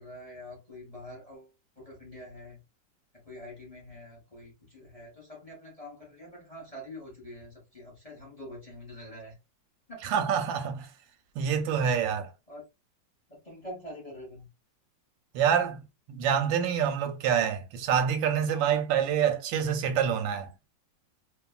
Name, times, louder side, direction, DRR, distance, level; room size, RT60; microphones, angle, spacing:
voice 1, 0.0-1.5 1.8-2.6 3.1-9.4 9.9-10.0 12.5-12.6 13.3-14.5, left 1 dB, 25° left, 0.8 m, -45 dB
voice 2, 10.0-10.9 11.4-12.3 15.3-15.8 16.1-20.5, right 8 dB, 90° right, 1.3 m, -26 dB
2.9 x 2.4 x 2.3 m
omnidirectional pair, 2.0 m